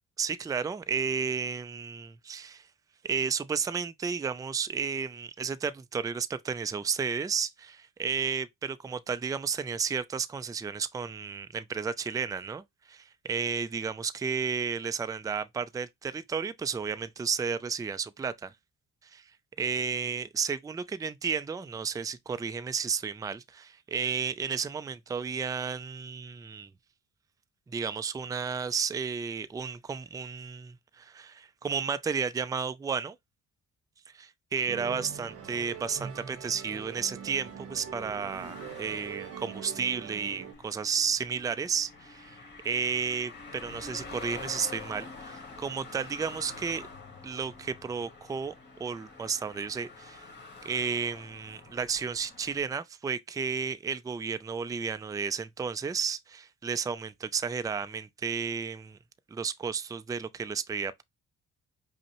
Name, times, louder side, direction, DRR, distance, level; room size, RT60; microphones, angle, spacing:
voice 1, 0.2-2.7 3.0-18.5 19.0-19.2 19.6-26.7 27.7-33.2 34.1-42.4 42.6-46.9 47.2-48.5 48.8-50.2 50.6-59.0 59.3-61.0, right 6 dB, 10° right, 0.3 m, -32 dB
Musical instrument, 34.7-40.5, right 7 dB, 50° right, 0.8 m, -42 dB
sound 1, 34.8-52.6, left 3 dB, 35° left, 1.6 m, -48 dB
5.2 x 2.1 x 2.9 m
cardioid pair, 90°, 30 cm